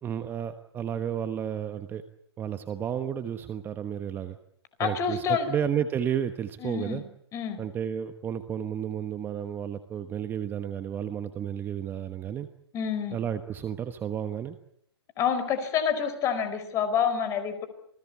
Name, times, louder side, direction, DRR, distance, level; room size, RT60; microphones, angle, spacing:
voice 1, 0.0-2.0 2.4-4.4 4.8-7.0 7.6-12.5 13.1-14.6, right 9 dB, 15° right, 10 dB, 1.2 m, -32 dB
voice 2, 4.8-5.5 6.6-7.0 7.3-7.6 12.7-13.2 15.2-17.7, left 7 dB, 20° left, 10 dB, 4.6 m, -28 dB
28.0 x 19.5 x 8.6 m, 0.67 s
hypercardioid pair, 140°, 14 cm